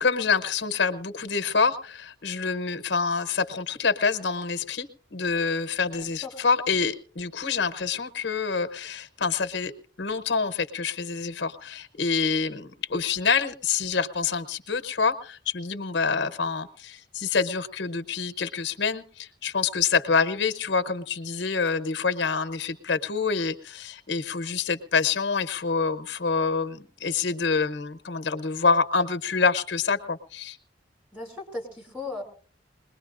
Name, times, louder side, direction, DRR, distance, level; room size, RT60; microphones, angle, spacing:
voice 1, 0.0-9.7 10.0-30.6, left 5 dB, 80° left, 10 dB, 0.9 m, -26 dB
voice 2, 5.9-6.4 31.1-32.2, left 3 dB, 10° right, 1 dB, 3.6 m, -37 dB
21.5 x 20.0 x 2.5 m, 0.41 s
head